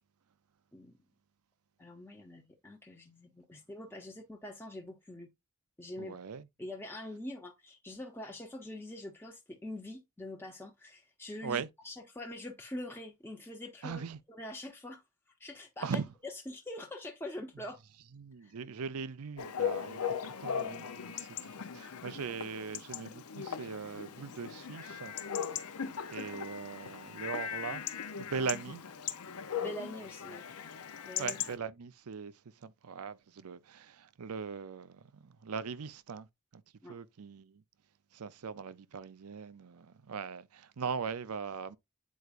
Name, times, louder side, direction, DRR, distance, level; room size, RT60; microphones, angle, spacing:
voice 1, 1.8-5.3 5.8-6.2 6.6-14.0 14.3-15.0 15.4-16.0 16.5-17.8 18.4-18.5 29.6-30.4 31.0-31.4 36.8-37.0, left 1 dB, 10° left, 0.8 m, -44 dB
voice 2, 6.0-6.5 11.4-11.7 13.8-14.2 15.8-16.1 18.1-25.1 25.4-25.8 26.1-27.8 28.1-28.8 31.2-36.3 36.5-37.6 38.1-41.8, right 5 dB, 80° right, 0.6 m, -40 dB
Chatter / Bark / Livestock farm animals working animals, 19.4-31.6, left 8 dB, 80° left, 0.7 m, -39 dB
8.4 x 4.6 x 2.5 m
head